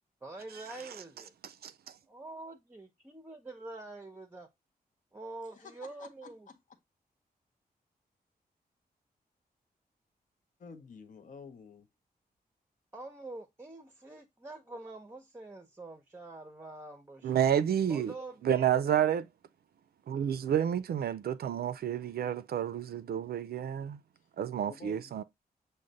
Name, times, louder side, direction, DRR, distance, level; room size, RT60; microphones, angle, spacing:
voice 1, 0.2-1.3 2.1-4.5 5.1-6.5 12.9-17.4 17.9-18.7, right 2 dB, 15° right, 0.6 m, -46 dB
voice 2, 6.0-6.3 10.6-11.9 24.6-25.2, left 5 dB, 55° left, 0.6 m, -50 dB
voice 3, 17.2-18.1 18.4-19.3 20.1-24.0 24.4-25.2, right 9 dB, 75° right, 0.4 m, -30 dB
6.3 x 2.1 x 3.8 m
wide cardioid pair, 125°, 16 cm